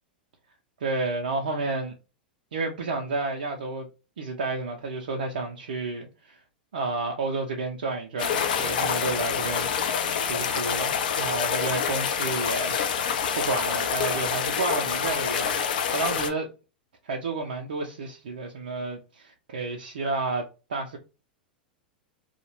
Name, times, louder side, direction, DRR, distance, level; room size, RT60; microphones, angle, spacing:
voice 1, 0.8-1.9 2.5-3.9 4.2-6.4 6.7-9.7 10.3-13.1 13.3-16.5 17.0-21.0, right 3 dB, 70° right, 0.4 m, -31 dB
sound 1, 8.2-16.3, left 7 dB, 60° left, 0.4 m, -27 dB
2.1 x 2.0 x 2.9 m
figure-of-eight pair, 95°, 5 cm